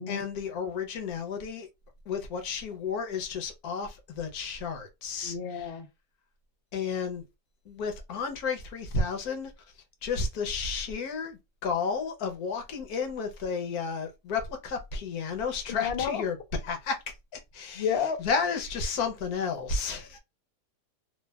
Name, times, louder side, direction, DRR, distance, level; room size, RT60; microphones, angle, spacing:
voice 1, 0.1-1.7 2.1-5.8 6.7-7.2 7.6-9.5 10.0-16.4 16.6-20.2, left 5 dB, 70° left, 1.2 m, -32 dB
voice 2, 5.2-5.9 15.7-16.2 17.8-18.2, left 7 dB, 85° left, 0.5 m, -30 dB
3.3 x 2.3 x 2.2 m
omnidirectional pair, 1.8 m